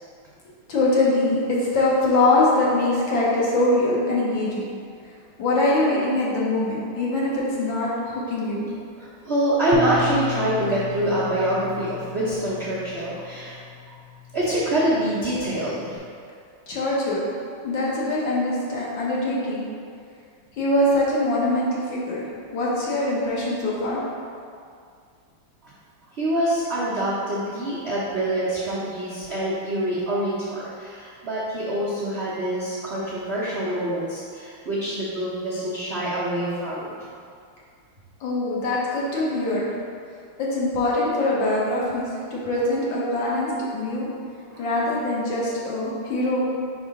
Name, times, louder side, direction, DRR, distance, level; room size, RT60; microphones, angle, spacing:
voice 1, 0.7-4.7 5.4-8.6 16.7-17.2 17.6-19.6 20.6-22.3 22.5-24.0 38.2-39.7 40.4-44.1 44.6-46.4, left 2 dB, 65° left, -6 dB, 1.8 m, -23 dB
voice 2, 9.0-13.6 13.9-14.0 14.3-16.0 25.6-25.7 26.1-36.9 44.5-44.6, right 1 dB, 55° right, -10 dB, 0.7 m, -25 dB
Bass guitar, 9.7-16.0, left 3 dB, 85° right, 1.5 m, -35 dB
5.3 x 5.0 x 3.7 m, 2.3 s
omnidirectional pair, 2.4 m